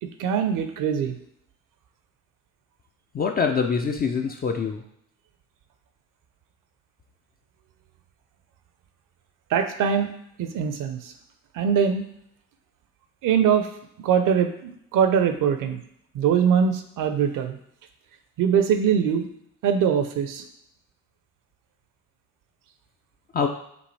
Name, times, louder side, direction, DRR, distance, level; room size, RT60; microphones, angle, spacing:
voice 1, 0.0-1.2 9.5-10.1 10.4-11.1 11.5-12.1 13.2-13.7 14.0-15.8 16.1-17.6 18.4-19.3 19.6-20.4, right 7 dB, 50° right, 8 dB, 0.7 m, -22 dB
voice 2, 3.1-4.8 23.3-23.5, left 5 dB, 25° left, 4 dB, 0.4 m, -24 dB
5.3 x 2.6 x 3.2 m, 0.73 s
hypercardioid pair, 65°, 43 cm